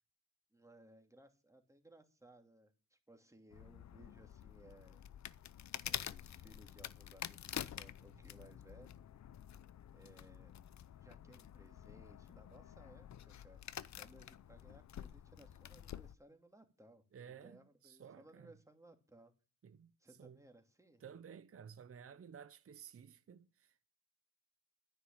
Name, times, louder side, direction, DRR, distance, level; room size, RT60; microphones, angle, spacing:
voice 1, 0.5-5.0 5.6-9.0 9.9-10.5 11.0-13.6 14.0-19.3 20.0-21.0, right 1 dB, 10° right, 2.6 m, -62 dB
sound 1, 3.5-16.2, left 10 dB, 50° left, 0.7 m, -48 dB
voice 2, 17.1-18.5 19.6-19.9 20.2-20.4 21.0-23.9, right 7 dB, 40° right, 0.9 m, -55 dB
10.0 x 9.7 x 8.7 m
cardioid pair, 90°, 37 cm